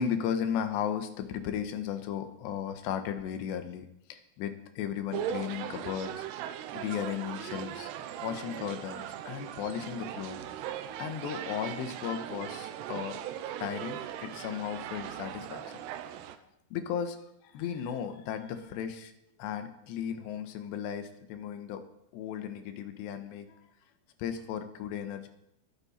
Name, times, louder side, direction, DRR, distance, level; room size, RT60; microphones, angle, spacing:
voice 1, 0.0-6.3 6.7-7.9 8.2-10.4 11.0-13.2 13.6-15.8 16.7-17.2 17.4-19.1 19.4-21.8 22.1-23.6 24.2-25.3, left 8 dB, 80° left, 8 dB, 3.2 m, -35 dB
sound 1, 5.1-16.4, right 10 dB, 85° right, 2.8 m, -39 dB
22.5 x 9.4 x 4.3 m, 0.78 s
omnidirectional pair, 5.0 m